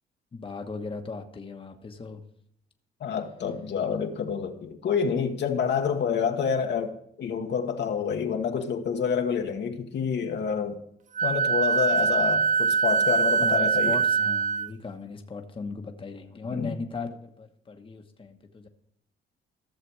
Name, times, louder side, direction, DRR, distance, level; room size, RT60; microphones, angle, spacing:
voice 1, 0.3-2.2 13.4-18.7, left 4 dB, 25° left, 1.2 m, -37 dB
voice 2, 3.0-10.8 11.2-14.0 16.5-16.8, left 7 dB, 60° left, 1.3 m, -28 dB
Wind instrument woodwind instrument, 11.2-14.7, right 5 dB, 40° right, 0.5 m, -23 dB
14.5 x 6.7 x 4.8 m
cardioid pair, 90°, 20 cm